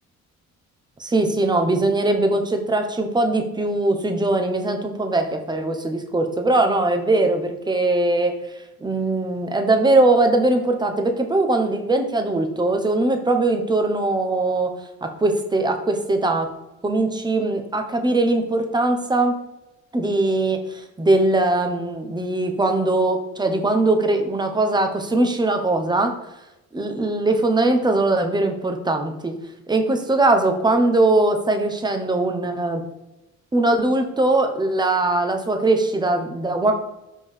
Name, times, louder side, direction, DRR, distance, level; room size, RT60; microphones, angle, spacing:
voice 1, 1.0-8.4 8.8-14.7 15.0-16.5 16.8-19.4 19.9-26.2 26.7-29.3 29.7-32.8 33.5-36.7, right 2 dB, 15° right, 5 dB, 0.9 m, -21 dB
5.4 x 5.1 x 3.3 m, 0.97 s
cardioid pair, 90°, 30 cm